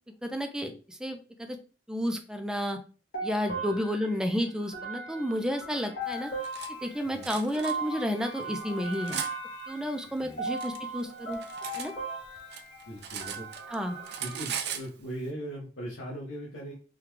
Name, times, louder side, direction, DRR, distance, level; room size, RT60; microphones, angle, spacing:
voice 1, 0.2-1.6 1.9-2.8 3.2-6.3 6.7-9.2 9.7-11.4 11.8-11.9 13.7-14.0, equal, 5° right, 5 dB, 0.4 m, -31 dB
sound 1, 3.1-14.4, right 2 dB, 50° left, 1.6 m, -38 dB
Cutlery silverware, 6.1-6.7 7.2-7.7 8.4-9.3 10.2-11.9 12.2-13.8 14.0-14.9, right 8 dB, 60° right, 0.5 m, -38 dB
voice 2, 12.9-13.5 14.2-16.7, equal, 75° left, -4 dB, 0.8 m, -39 dB
3.7 x 2.3 x 3.1 m, 0.37 s
head